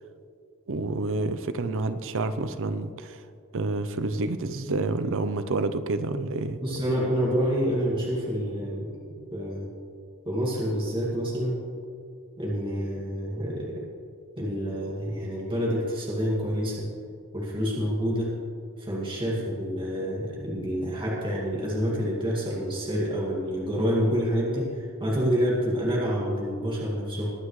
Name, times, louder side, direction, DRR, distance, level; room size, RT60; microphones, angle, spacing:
voice 1, 0.7-3.2 3.5-6.6, right 3 dB, 60° right, 11 dB, 0.6 m, -28 dB
voice 2, 6.6-8.9 9.3-9.7 10.3-11.6 12.4-13.9 14.4-16.9 17.3-18.3 18.8-27.3, equal, 25° right, -5 dB, 2.2 m, -28 dB
22.0 x 9.4 x 3.2 m, 2.4 s
head